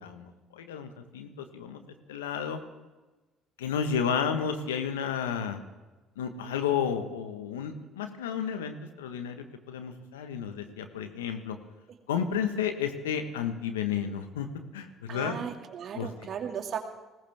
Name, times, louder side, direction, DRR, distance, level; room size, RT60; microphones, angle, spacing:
voice 1, 0.0-1.8 2.1-2.6 3.6-5.6 6.2-11.6 12.1-14.5 14.7-15.4 15.9-16.1, left 7 dB, 85° left, 7 dB, 1.4 m, -32 dB
voice 2, 15.1-16.8, right 8 dB, 50° right, 2 dB, 2.3 m, -36 dB
20.0 x 17.5 x 3.6 m, 1.2 s
hypercardioid pair, 60°, 0 cm